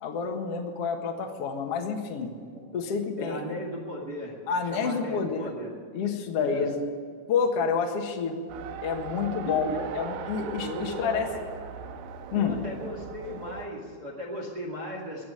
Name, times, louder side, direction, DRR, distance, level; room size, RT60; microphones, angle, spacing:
voice 1, 0.0-2.3 2.7-3.5 4.5-5.5 5.9-6.8 7.3-8.4 8.8-11.3 12.3-12.6, left 6 dB, 60° left, 2 dB, 1.7 m, -29 dB
voice 2, 3.2-4.4 4.7-5.7 6.4-6.7 9.5-9.8 10.4-11.5 12.3-15.2, equal, 30° right, -1 dB, 2.0 m, -36 dB
Race car auto racing, 8.5-13.7, right 7 dB, 80° right, 2.8 m, -39 dB
22.0 x 7.5 x 8.7 m, 2.1 s
omnidirectional pair, 5.0 m